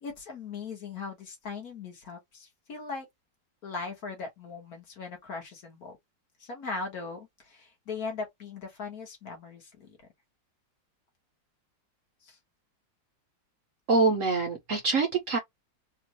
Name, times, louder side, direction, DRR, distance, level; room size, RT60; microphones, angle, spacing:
voice 1, 0.0-3.1 3.6-6.0 6.4-10.0 12.2-12.4, left 4 dB, 55° left, 1.7 m, -39 dB
voice 2, 13.9-15.4, right 4 dB, 55° right, 1.0 m, -25 dB
3.7 x 2.5 x 2.9 m
omnidirectional pair, 2.0 m